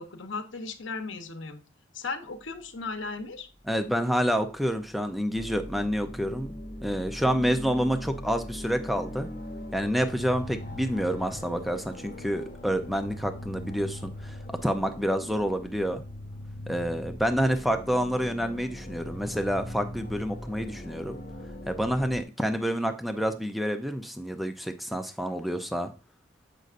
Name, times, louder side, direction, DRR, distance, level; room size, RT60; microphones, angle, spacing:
voice 1, 0.0-1.6 1.9-3.5, left 4 dB, 70° left, 6 dB, 0.9 m, -36 dB
voice 2, 3.7-6.5 6.8-9.3 9.7-14.4 14.6-16.0 16.7-21.2 21.7-25.9, equal, ahead, 7 dB, 0.4 m, -28 dB
sound 1, 5.3-22.2, left 1 dB, 45° left, 1.2 m, -40 dB
7.8 x 5.2 x 2.5 m, 0.35 s
head